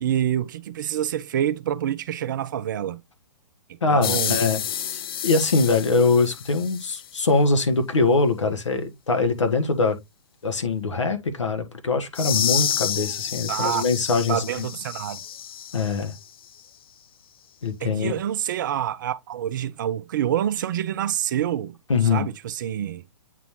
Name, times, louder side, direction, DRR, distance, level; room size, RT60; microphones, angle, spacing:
voice 1, 0.0-3.0 3.9-4.4 13.5-13.8 14.3-15.2 17.8-21.8 22.1-23.0, right 10 dB, 40° right, 0.5 m, -27 dB
voice 2, 3.8-10.0 10.4-14.7 15.7-16.1 17.6-18.1 21.9-22.3, left 3 dB, 70° left, 1.5 m, -23 dB
sound 1, 4.0-7.1 12.1-16.2, left 9 dB, 50° left, 0.4 m, -29 dB
8.4 x 3.9 x 3.1 m
figure-of-eight pair, 120°, 16 cm